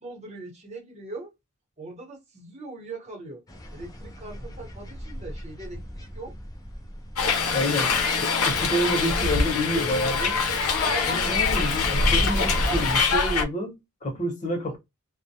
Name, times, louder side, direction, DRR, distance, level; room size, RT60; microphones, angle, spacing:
voice 1, 0.0-1.3 1.8-3.4 3.7-6.3 10.8-11.5 14.7-14.8, right 2 dB, 30° right, 1.0 m, -41 dB
sound 1, 3.5-13.0, equal, 15° left, 0.4 m, -38 dB
Hiss, 7.2-13.4, left 4 dB, 90° left, 0.6 m, -24 dB
voice 2, 7.5-10.4 11.1-14.8, equal, 35° left, 0.9 m, -28 dB
2.2 x 2.1 x 2.7 m
head